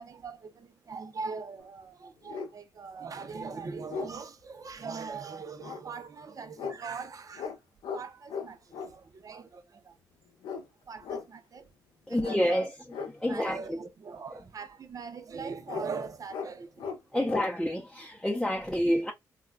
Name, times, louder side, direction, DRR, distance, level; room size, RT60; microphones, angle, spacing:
voice 1, 0.0-7.5 7.9-9.9 10.9-11.7 12.1-12.7 13.2-16.9 17.1-17.3, right 5 dB, 50° right, 0.6 m, -41 dB
sound 1, 1.6-1.7 2.2-2.5 3.1-3.2 3.5-4.1 5.6-5.8 6.6-6.8 7.3-7.6 7.8-8.0 8.3-8.9 10.4-10.7 11.0-11.2 12.2-12.4 12.9-13.1 15.7-15.9 16.3-16.5 16.8-17.0 17.3-17.5, left 6 dB, 80° left, 0.6 m, -37 dB
voice 2, 12.1-13.8 17.1-19.1, equal, 5° left, 0.7 m, -29 dB
3.6 x 2.3 x 2.2 m
supercardioid pair, 45°, 8 cm